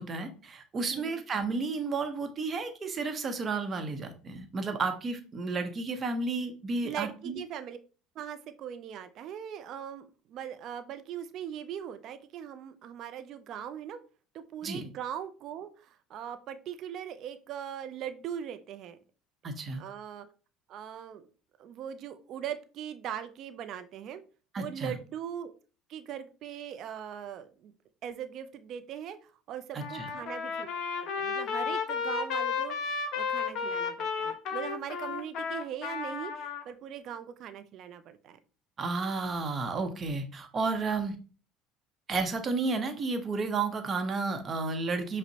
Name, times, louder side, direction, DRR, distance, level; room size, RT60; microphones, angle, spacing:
voice 1, 0.0-7.4 14.6-14.9 19.4-19.8 24.5-24.9 29.7-30.1 38.8-41.2 42.1-45.2, right 3 dB, 35° right, 7 dB, 0.7 m, -32 dB
voice 2, 0.9-1.2 6.8-7.8 8.2-14.0 14.3-19.0 19.8-20.3 20.7-21.3 21.6-24.2 24.6-25.5 25.9-27.7 28.0-30.7 31.0-38.4, right 9 dB, 55° right, 11 dB, 0.4 m, -40 dB
Trumpet, 29.8-36.6, left 5 dB, 55° left, 0.7 m, -33 dB
5.1 x 2.1 x 2.8 m, 0.37 s
hypercardioid pair, 75°, 0 cm